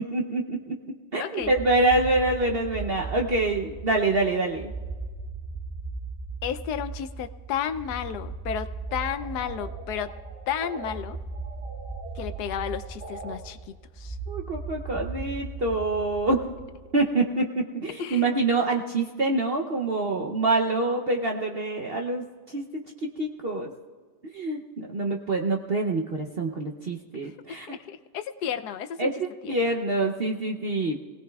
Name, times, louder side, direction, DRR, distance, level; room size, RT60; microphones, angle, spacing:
voice 1, 0.0-4.7 14.3-16.4 16.9-22.2 22.5-22.7 23.0-23.7 24.3-27.8 29.0-31.0, right 2 dB, 50° right, 2 dB, 0.7 m, -26 dB
voice 2, 1.2-1.5 6.4-10.1 10.5-11.2 12.2-14.2 18.0-18.3 27.5-29.1 29.4-29.5, left 9 dB, 75° left, 11 dB, 1.1 m, -32 dB
sound 1, 1.4-17.0, right 4 dB, ahead, 1.3 m, -38 dB
sound 2, 8.9-11.0 11.3-13.4, right 4 dB, 75° right, 1.7 m, -43 dB
22.5 x 17.0 x 2.3 m, 1.5 s
omnidirectional pair, 1.8 m